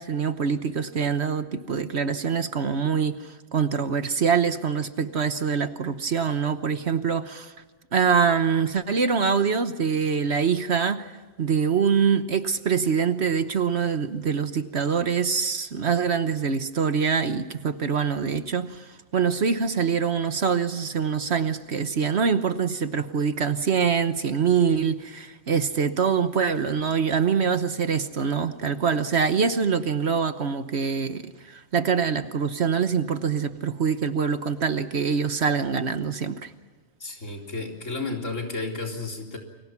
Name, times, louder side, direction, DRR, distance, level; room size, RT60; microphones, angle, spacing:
voice 1, 0.0-7.5 7.9-11.1 11.4-36.5, right 6 dB, 55° right, 11 dB, 1.3 m, -24 dB
voice 2, 37.0-39.4, left 3 dB, 65° left, 1 dB, 4.2 m, -32 dB
29.5 x 23.0 x 6.0 m, 1.3 s
omnidirectional pair, 1.4 m